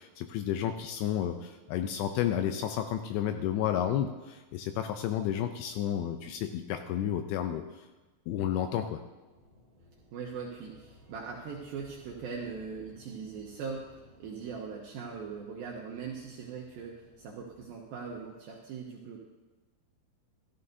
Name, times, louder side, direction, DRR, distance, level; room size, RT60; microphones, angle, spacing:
voice 1, 0.0-7.6 8.3-9.0, left 10 dB, 80° left, 7 dB, 2.5 m, -31 dB
sound 1, 9.3-18.3, left 1 dB, 55° right, 0.5 m, -58 dB
voice 2, 10.1-19.2, right 5 dB, 80° right, -1 dB, 2.1 m, -40 dB
14.0 x 13.5 x 2.7 m, 1.2 s
omnidirectional pair, 5.3 m